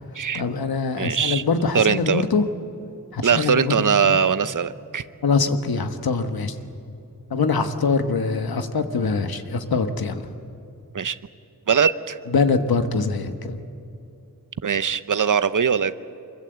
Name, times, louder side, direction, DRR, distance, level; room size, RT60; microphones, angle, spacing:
voice 1, 0.3-2.4 3.1-3.8 4.1-4.2 5.2-6.6 7.3-10.3 12.3-13.6, left 4 dB, 85° left, 8 dB, 1.4 m, -23 dB
voice 2, 1.0-1.4 1.7-2.2 3.2-5.0 10.9-11.2 11.7-12.2 14.6-15.9, right 7 dB, 60° right, 14 dB, 0.8 m, -21 dB
24.5 x 23.0 x 8.0 m, 2.7 s
wide cardioid pair, 70°, 35 cm